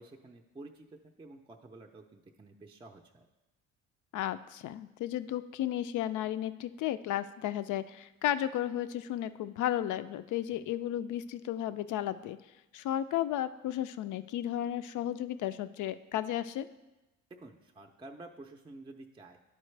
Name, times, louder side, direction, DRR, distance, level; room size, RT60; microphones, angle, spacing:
voice 1, 0.0-3.3 10.6-10.7 17.3-19.4, right 2 dB, 15° right, 2 dB, 0.5 m, -51 dB
voice 2, 4.1-12.4 12.7-16.7, left 12 dB, 65° left, 13 dB, 0.5 m, -34 dB
11.0 x 4.3 x 3.2 m, 1.0 s
cardioid pair, 85°, 33 cm